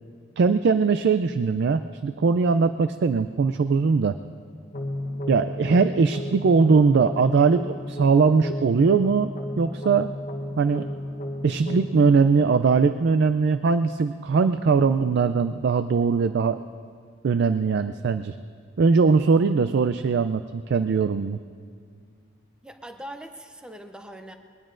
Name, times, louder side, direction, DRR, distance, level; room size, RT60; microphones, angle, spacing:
voice 1, 0.4-4.2 5.3-9.3 9.6-10.1 10.6-10.9 11.4-16.6 17.2-18.4 18.8-21.4, right 5 dB, 55° right, 11 dB, 0.3 m, -21 dB
sound 1, 4.7-13.7, left 1 dB, 40° left, 1.0 m, -34 dB
voice 2, 22.6-24.4, right 1 dB, 5° right, 6 dB, 0.6 m, -41 dB
22.0 x 19.5 x 2.6 m, 2.1 s
head